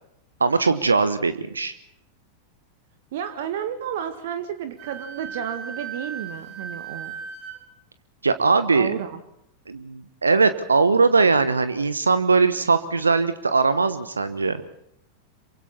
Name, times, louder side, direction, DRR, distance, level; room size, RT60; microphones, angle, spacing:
voice 1, 0.4-1.7 8.2-8.9 9.7-14.6, right 4 dB, 75° right, 13 dB, 1.1 m, -20 dB
voice 2, 3.1-7.1 8.7-9.2, right 9 dB, 55° right, 9 dB, 1.7 m, -31 dB
Wind instrument woodwind instrument, 4.8-7.6, right 6 dB, 35° right, 7.8 m, -36 dB
27.5 x 23.5 x 4.3 m, 0.78 s
figure-of-eight pair, 90°, 0 cm